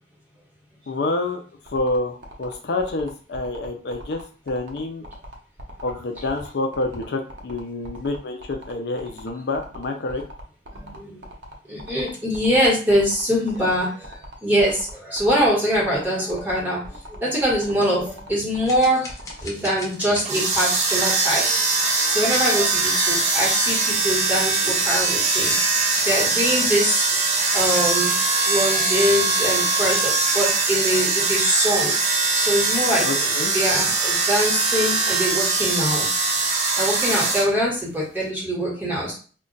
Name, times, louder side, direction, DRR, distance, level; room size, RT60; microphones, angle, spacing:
voice 1, 0.9-1.4 1.7-5.0 5.8-10.2 33.0-33.5 35.1-35.2, left 2 dB, 70° left, 4 dB, 0.4 m, -28 dB
sound 1, 1.7-19.4, equal, 85° right, 0.7 m, -42 dB
voice 2, 10.7-11.2 11.7-16.8 17.1-19.1 19.4-21.6 22.1-25.5 26.0-27.1 27.5-28.1 28.5-31.9 32.3-36.3 36.8-39.1, equal, 10° right, -6 dB, 1.2 m, -23 dB
sound 2, 18.7-21.2 22.6-23.4 24.7-25.1 25.5-26.2, left 2 dB, 20° left, 0.5 m, -39 dB
sound 3, 20.2-37.5, right 3 dB, 40° right, 0.5 m, -21 dB
2.3 x 2.2 x 3.8 m, 0.39 s
head